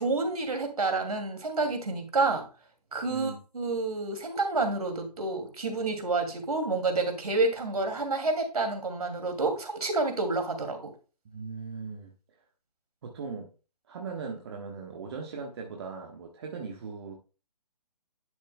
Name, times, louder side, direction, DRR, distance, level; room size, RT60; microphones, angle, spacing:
voice 1, 0.0-2.4 2.9-10.9, right 3 dB, 65° right, 2.6 m, -29 dB
voice 2, 3.1-3.4 11.3-12.1 13.0-13.5 13.9-17.1, right 5 dB, 40° right, 1.3 m, -39 dB
11.0 x 7.1 x 2.3 m
figure-of-eight pair, 140°, 21 cm